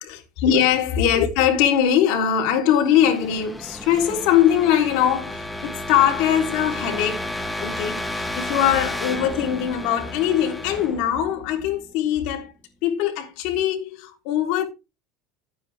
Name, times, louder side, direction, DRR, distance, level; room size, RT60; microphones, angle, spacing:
voice 1, 0.0-7.2 7.6-12.5 12.8-14.6, left 9 dB, 65° left, 3.3 m, -21 dB
sound 1, 2.3-12.1, left 1 dB, ahead, 1.2 m, -33 dB
13.5 x 9.2 x 3.5 m
cardioid pair, 155°, 0 cm